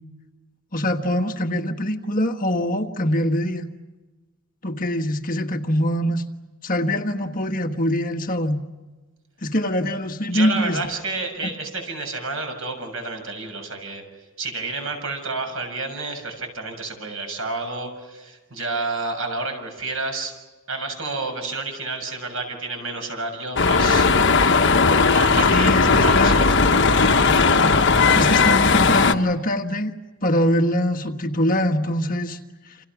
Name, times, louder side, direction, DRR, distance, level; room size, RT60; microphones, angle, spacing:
voice 1, 0.7-3.7 4.6-6.2 6.6-8.6 9.4-10.8 25.5-26.4 28.1-29.9 30.2-32.4, left 1 dB, 40° left, 5 dB, 1.6 m, -23 dB
voice 2, 10.3-14.0 14.4-20.3 20.7-24.1 25.0-27.2, right 3 dB, 65° right, 5 dB, 6.8 m, -30 dB
sound 1, 23.6-29.1, left 4 dB, 55° left, 1.2 m, -17 dB
29.5 x 28.0 x 6.1 m, 1.2 s
head